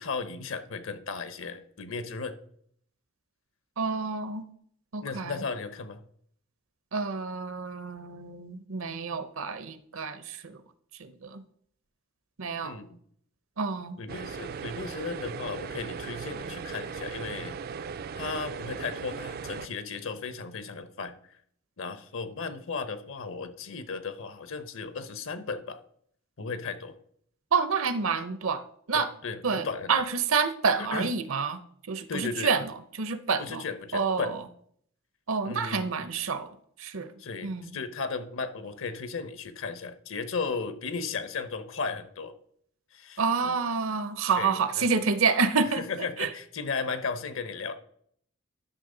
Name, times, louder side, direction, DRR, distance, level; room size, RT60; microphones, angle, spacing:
voice 1, 0.0-2.4 5.0-6.0 12.6-13.0 14.0-17.6 18.2-21.1 21.8-25.8 26.4-26.9 28.9-29.9 30.8-31.1 32.1-32.6 33.4-34.3 35.4-35.9 37.2-42.3 42.9-43.6 44.3-44.9 45.7-47.7, left 4 dB, 65° left, 10 dB, 0.9 m, -35 dB
voice 2, 3.8-4.4 4.9-5.4 6.9-10.6 11.0-11.4 12.4-12.7 13.6-14.0 27.5-28.6 28.9-29.1 29.4-31.6 31.9-32.7 33.0-33.6 33.9-34.3 35.3-36.5 36.8-37.1 37.4-37.7 43.2-45.9 46.2-46.3, right 5 dB, 70° right, 12 dB, 0.7 m, -28 dB
sound 1, 14.1-19.7, right 5 dB, 45° right, 0.4 m, -38 dB
11.5 x 6.1 x 3.8 m, 0.65 s
head